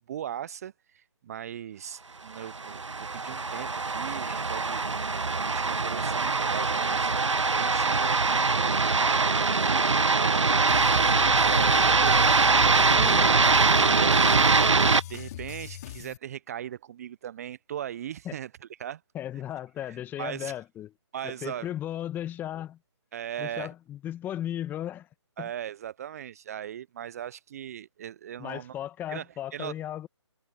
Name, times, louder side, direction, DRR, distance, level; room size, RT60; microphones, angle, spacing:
voice 1, 0.1-4.8 5.4-7.1 7.4-10.7 11.1-13.0 13.8-14.7 15.1-18.5 18.8-19.0 19.9-20.5 21.1-21.7 23.1-23.7 25.4-28.7 29.1-29.3 29.5-29.7, right 10 dB, 30° right, 0.5 m, -39 dB
sound 1, 2.5-15.0, right 4 dB, 90° right, 0.7 m, -23 dB
sound 2, 10.7-16.2, left 13 dB, 35° left, 3.4 m, -40 dB
voice 2, 12.9-13.4 18.2-18.3 19.1-20.9 21.2-22.8 23.4-25.1 25.4-25.5 28.4-30.1, left 11 dB, 10° left, 1.6 m, -36 dB
figure-of-eight pair, 145°, 15 cm